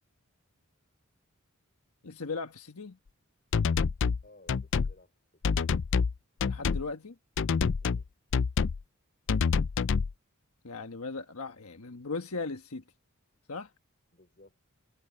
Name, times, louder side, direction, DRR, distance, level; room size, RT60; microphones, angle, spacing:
voice 1, 2.0-3.0 6.4-7.2 10.6-12.8 13.5-13.7, left 4 dB, 85° left, 1.3 m, -38 dB
sound 1, 3.5-4.2 4.5-4.9 5.4-6.1 6.4-6.8 7.4-8.0 8.3-8.8 9.3-10.1, left 5 dB, 60° left, 0.4 m, -27 dB
voice 2, 4.2-5.6 7.8-8.1 14.1-14.6, left 2 dB, 40° left, 4.6 m, -59 dB
head